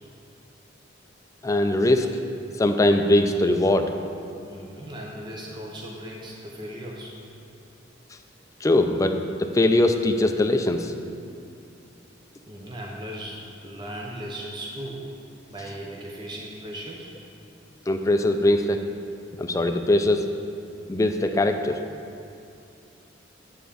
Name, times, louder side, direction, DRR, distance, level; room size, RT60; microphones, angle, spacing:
voice 1, 1.4-2.1 2.6-3.9 8.6-10.9 17.9-18.8 19.4-20.2 20.9-21.8, left 1 dB, 15° left, 6 dB, 0.4 m, -21 dB
voice 2, 4.5-7.1 12.4-15.1 15.5-17.1, right 1 dB, 25° right, -2 dB, 0.7 m, -37 dB
8.9 x 3.7 x 6.9 m, 2.5 s
head